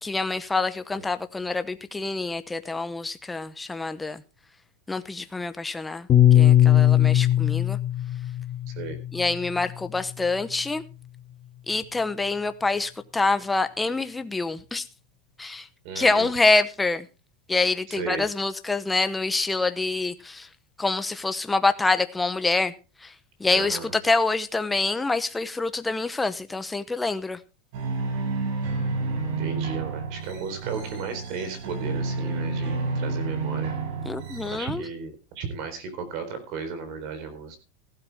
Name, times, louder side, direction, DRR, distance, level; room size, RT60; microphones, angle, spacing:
voice 1, 0.0-4.2 4.9-6.1 6.3-7.8 9.1-10.8 11.7-14.9 15.4-15.7 15.9-17.1 17.5-20.5 20.8-22.7 23.0-23.1 23.4-27.4 34.0-34.8, left 3 dB, 5° left, 10 dB, 0.8 m, -26 dB
Piano, 6.1-10.5, left 11 dB, 25° left, 1.9 m, -20 dB
voice 2, 8.7-9.0 15.8-16.3 17.9-18.3 23.5-23.9 29.4-33.7 34.5-37.6, right 5 dB, 45° right, 10 dB, 4.1 m, -35 dB
sound 1, 27.7-34.6, right 3 dB, 65° right, 5.7 m, -29 dB
15.0 x 12.5 x 3.5 m, 0.32 s
supercardioid pair, 165°, 0 cm